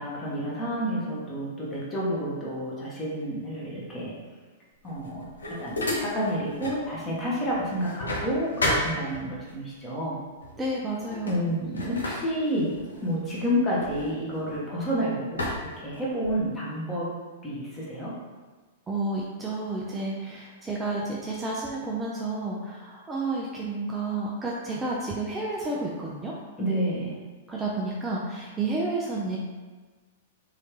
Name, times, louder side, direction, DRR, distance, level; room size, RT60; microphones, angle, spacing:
voice 1, 0.0-4.1 4.8-10.2 11.3-12.8 13.0-17.1 17.4-18.2 26.6-27.1, equal, 20° left, -6 dB, 1.2 m, -29 dB
sound 1, 4.8-6.9 7.2-9.5 10.4-10.7 11.0-14.9 15.4-16.5, left 1 dB, 80° left, 0.7 m, -33 dB
voice 2, 10.6-11.3 18.9-26.3 27.5-29.4, right 2 dB, 15° right, -4 dB, 0.4 m, -31 dB
3.1 x 2.7 x 3.3 m, 1.3 s
figure-of-eight pair, 105°, 0 cm